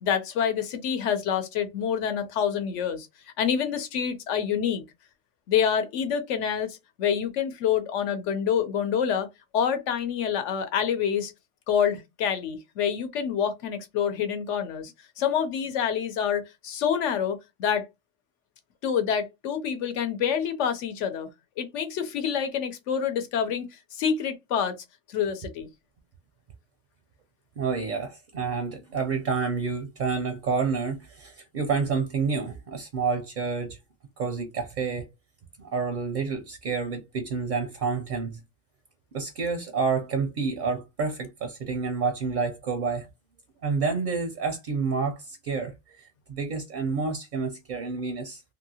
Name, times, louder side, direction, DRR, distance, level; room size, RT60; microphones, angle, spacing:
voice 1, 0.0-3.1 3.4-4.8 5.5-9.3 9.5-11.3 11.7-14.9 15.2-17.9 18.8-21.3 21.6-24.8 25.1-25.7, left 8 dB, 75° left, 1.0 m, -27 dB
voice 2, 27.6-33.8 34.2-35.1 35.6-38.4 39.1-43.1 43.6-48.4, right 5 dB, 60° right, 0.5 m, -29 dB
2.7 x 2.6 x 2.7 m
omnidirectional pair, 1.3 m